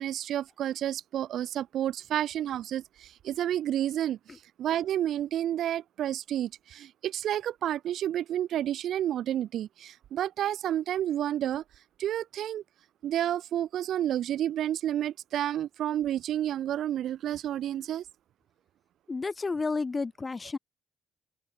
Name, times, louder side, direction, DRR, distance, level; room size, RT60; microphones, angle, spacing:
voice 1, 0.0-4.2 4.6-11.6 12.0-12.6 13.0-18.0, right 11 dB, 75° right, 0.8 m, -30 dB
voice 2, 19.1-20.6, left 4 dB, 30° left, 3.2 m, -31 dB
cardioid pair, 90°, 0 cm